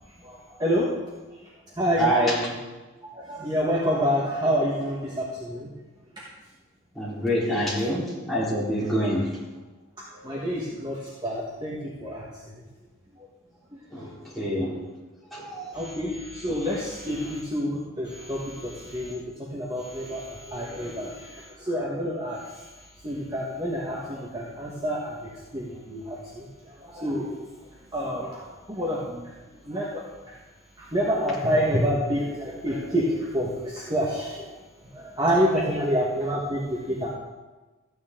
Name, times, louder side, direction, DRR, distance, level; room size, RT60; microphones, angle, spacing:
voice 1, 0.2-1.0 1.8-2.1 3.1-5.7 10.1-12.5 15.7-22.6 23.0-27.5 27.9-29.2 29.7-30.3 30.8-34.6 34.9-37.1, equal, 20° right, -5 dB, 1.4 m, -28 dB
voice 2, 2.0-2.5 6.9-9.3 13.9-14.7 15.3-15.8, equal, ahead, -9 dB, 3.8 m, -26 dB
14.0 x 9.4 x 3.7 m, 1.2 s
head